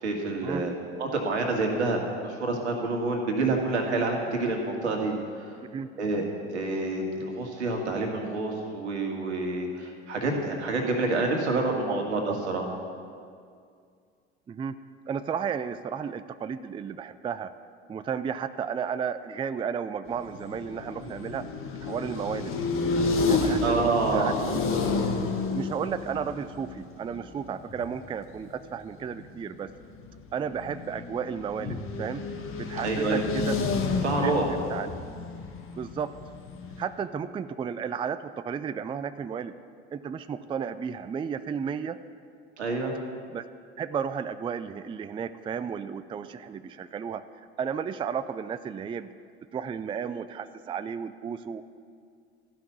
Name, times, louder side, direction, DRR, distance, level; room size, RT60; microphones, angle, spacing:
voice 1, 0.0-5.5 6.0-12.7 23.6-24.4 32.8-33.2 34.0-34.5 42.6-42.9, right 2 dB, 80° right, 2 dB, 1.9 m, -28 dB
voice 2, 11.9-12.4 14.5-14.8 15.1-17.5 17.9-21.4 21.8-22.5 23.2-24.6 25.5-29.7 30.3-32.2 32.6-33.6 34.2-34.4 34.7-35.0 35.8-36.1 36.8-39.5 39.9-42.0 43.3-43.4 43.8-47.2 47.6-49.1 49.5-51.6, right 7 dB, 15° right, 12 dB, 0.4 m, -33 dB
sound 1, 20.1-28.1 28.5-28.6 28.9-36.8, left 3 dB, 40° left, 1.6 m, -31 dB
13.0 x 5.9 x 8.5 m, 2.2 s
hypercardioid pair, 70°, 33 cm